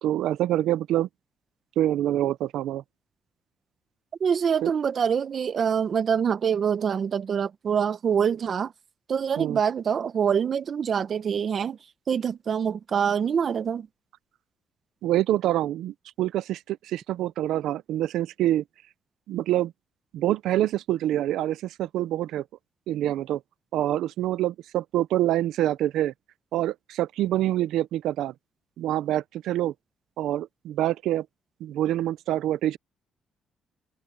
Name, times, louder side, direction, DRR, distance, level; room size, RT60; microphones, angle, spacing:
voice 1, 0.0-1.1 1.8-2.8 4.6-4.7 9.4-9.6 15.0-18.6 19.3-19.7 20.1-22.4 22.9-23.4 23.7-26.1 26.5-28.3 28.8-29.7 30.2-31.3 31.6-32.8, right 13 dB, 85° right, 0.7 m, -26 dB
voice 2, 4.2-8.7 9.1-11.8 12.1-13.9, right 7 dB, 50° right, 1.5 m, -25 dB
cardioid pair, 90°, 0 cm